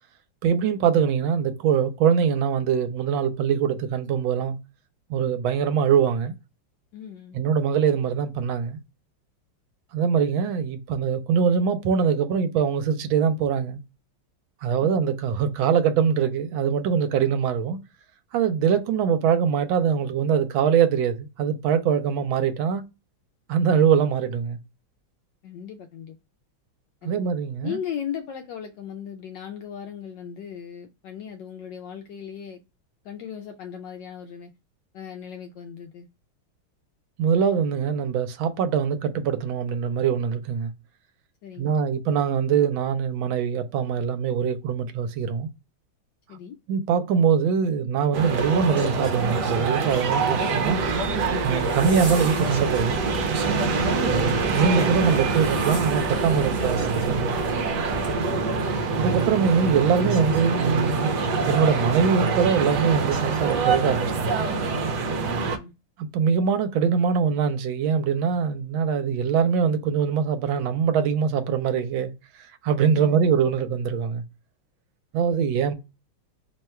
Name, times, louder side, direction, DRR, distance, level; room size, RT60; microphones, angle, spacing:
voice 1, 0.4-4.6 5.1-6.3 7.3-8.8 9.9-13.8 14.6-17.8 18.3-22.8 23.5-24.6 27.0-27.8 37.2-40.7 41.6-45.5 46.7-50.8 51.4-53.0 54.1-57.4 58.9-61.1 61.5-64.4 66.0-74.2 75.1-75.7, right 7 dB, 80° right, 1.4 m, -23 dB
voice 2, 6.9-7.4 14.8-14.9 25.4-26.2 27.0-27.3 27.6-32.6 33.0-34.5 34.9-36.1 41.4-41.8 46.3-46.6 53.7-54.2 65.2-65.7 72.9-73.3, left 8 dB, 75° left, 1.1 m, -37 dB
sound 1, 48.1-65.6, right 4 dB, 65° right, 1.2 m, -25 dB
sound 2, 48.8-49.2 52.5-52.9 56.8-57.1 60.0-60.5 62.1-62.2 63.1-63.5 64.5-64.6 65.0-65.1, right 3 dB, 40° right, 1.2 m, -45 dB
Zipper (clothing), 50.6-58.1, right 1 dB, 20° right, 0.7 m, -38 dB
3.4 x 2.2 x 4.2 m
omnidirectional pair, 2.2 m